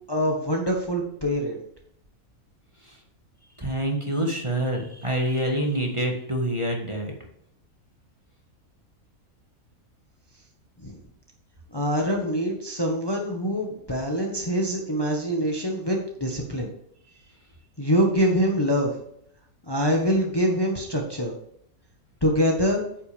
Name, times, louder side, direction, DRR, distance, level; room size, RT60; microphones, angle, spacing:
voice 1, 0.1-1.6 10.8-11.0 11.7-16.7 17.8-18.9 19.7-21.3 22.2-22.8, equal, 15° left, 1 dB, 1.3 m, -24 dB
voice 2, 3.6-7.1, right 1 dB, 20° right, 1 dB, 1.7 m, -26 dB
9.6 x 8.3 x 3.5 m, 0.71 s
omnidirectional pair, 1.5 m